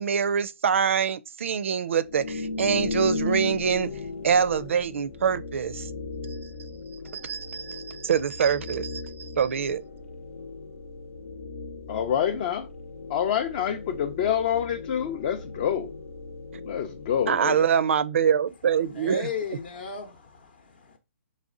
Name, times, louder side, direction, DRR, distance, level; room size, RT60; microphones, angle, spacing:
voice 1, 0.0-3.9 4.2-5.9 7.1-9.8 16.5-16.6 17.3-19.3, right 7 dB, 65° right, 0.4 m, -25 dB
sound 1, 2.1-17.8, left 3 dB, 80° left, 0.8 m, -36 dB
voice 2, 11.9-12.7 13.1-15.9 16.7-17.6, left 9 dB, 35° left, 0.4 m, -27 dB
voice 3, 18.9-21.0, left 6 dB, 50° left, 0.8 m, -36 dB
4.1 x 3.2 x 3.7 m
hypercardioid pair, 155°, 7 cm